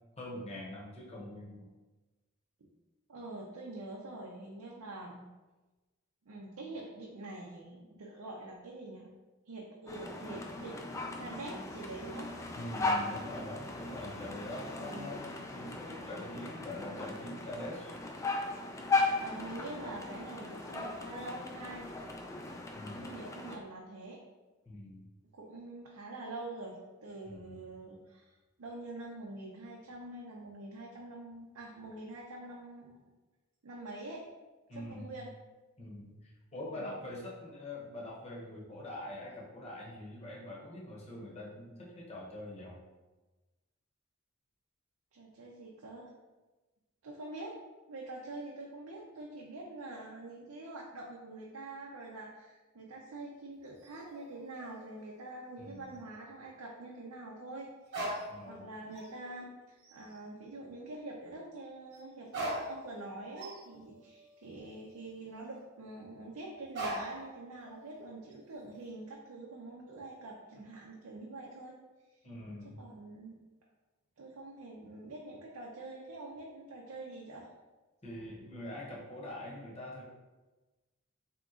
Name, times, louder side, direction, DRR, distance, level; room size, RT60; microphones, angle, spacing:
voice 1, 0.2-1.7 12.5-17.9 22.7-23.2 24.6-25.0 27.2-27.6 34.7-35.1 35.8-42.8 55.6-55.9 58.3-58.7 72.2-72.8 78.0-80.0, left 1 dB, 30° left, -4 dB, 0.9 m, -44 dB
voice 2, 3.1-5.3 6.3-9.1 9.5-12.3 14.5-15.1 19.2-21.9 23.0-24.2 25.3-33.1 33.6-34.3 34.7-35.3 36.7-37.0 45.1-46.1 47.0-47.6 47.9-71.8 72.8-73.4 74.2-77.5, right 2 dB, 80° right, -2 dB, 0.6 m, -45 dB
sound 1, 9.9-23.6, left 3 dB, 15° left, 0.3 m, -37 dB
sound 2, 53.6-55.7 56.0-56.1 57.9-58.6 58.9-59.4 59.8-60.2 61.9-62.0 62.3-65.6 66.8-67.3 67.6-68.3, right 1 dB, 50° right, 1.1 m, -42 dB
3.6 x 2.9 x 3.7 m, 1.2 s
head